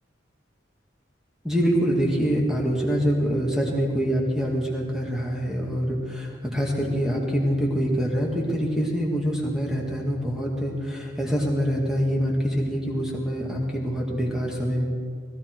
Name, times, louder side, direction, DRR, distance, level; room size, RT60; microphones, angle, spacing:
voice 1, 1.4-14.8, equal, 5° right, -2 dB, 1.9 m, -25 dB
18.5 x 13.5 x 4.6 m, 2.1 s
head